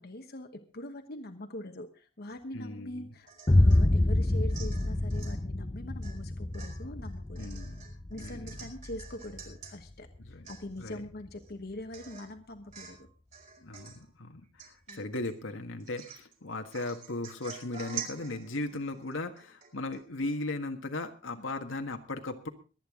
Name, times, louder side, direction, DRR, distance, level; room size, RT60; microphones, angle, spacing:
voice 1, 0.0-7.6 8.1-13.1 14.9-15.1, left 1 dB, 55° left, 6 dB, 1.2 m, -43 dB
voice 2, 2.5-3.1 7.4-7.8 8.2-8.7 10.2-10.5 10.8-11.0 13.6-22.5, left 2 dB, 85° left, 6 dB, 1.7 m, -37 dB
Domestic sounds home sounds / Chink clink / Drip, 3.3-3.8 4.2-5.4 6.0-6.2 6.5-9.7 10.1-10.2 10.4-11.0 11.4-11.5 11.9-12.3 12.7-13.1 13.3-14.0 14.6-15.3 15.8-16.3 16.7-20.0 20.3-20.4, right 8 dB, 40° right, 5.0 m, -47 dB
Boom, 3.5-11.3, left 1 dB, 25° left, 0.7 m, -28 dB
23.0 x 9.1 x 3.8 m, 0.35 s
head